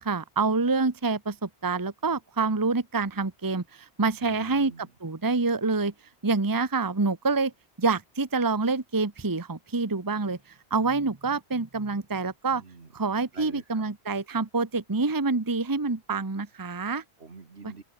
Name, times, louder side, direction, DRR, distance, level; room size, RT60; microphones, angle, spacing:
voice 1, 0.0-4.7 5.0-5.9 6.2-7.5 7.8-10.4 10.7-12.6 12.9-17.0 17.6-17.7, right 3 dB, 20° right, 1.1 m, -27 dB
voice 2, 4.2-4.9 12.5-12.9 13.3-13.9 17.2-17.8, right 4 dB, 65° right, 2.3 m, -46 dB
open air
omnidirectional pair, 1.1 m